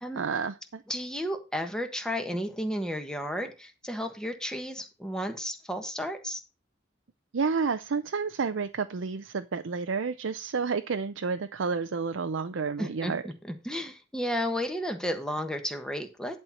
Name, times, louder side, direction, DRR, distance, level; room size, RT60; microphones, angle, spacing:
voice 1, 0.2-0.8 7.3-13.2, right 5 dB, 85° right, 0.6 m, -30 dB
voice 2, 0.9-6.4 12.8-16.4, equal, 5° left, 1.3 m, -33 dB
11.0 x 4.4 x 5.7 m
head